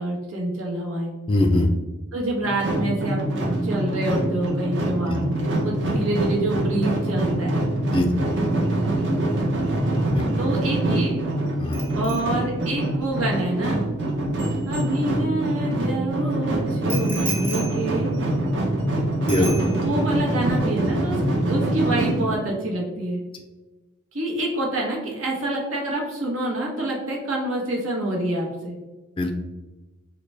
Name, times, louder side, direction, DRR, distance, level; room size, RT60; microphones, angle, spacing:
voice 1, 0.0-1.1 2.1-3.2 3.6-7.6 10.4-11.2 11.9-13.8 14.6-18.1 19.4-23.2 24.1-28.7, right 1 dB, 80° right, -1 dB, 1.0 m, -27 dB
voice 2, 1.3-1.7 5.1-5.2 5.8-5.9 7.9-8.1 10.1-10.3 11.6-11.8 19.3-19.5 20.9-21.0 29.2-29.3, left 1 dB, 25° left, 4 dB, 0.3 m, -21 dB
sound 1, 2.4-22.4, right 1 dB, 55° right, 0.7 m, -24 dB
Bicycle bell, 11.7-15.6 16.9-18.9 19.3-20.2 20.4-20.7, right 1 dB, 10° right, 0.7 m, -37 dB
4.0 x 2.2 x 3.2 m, 1.1 s
head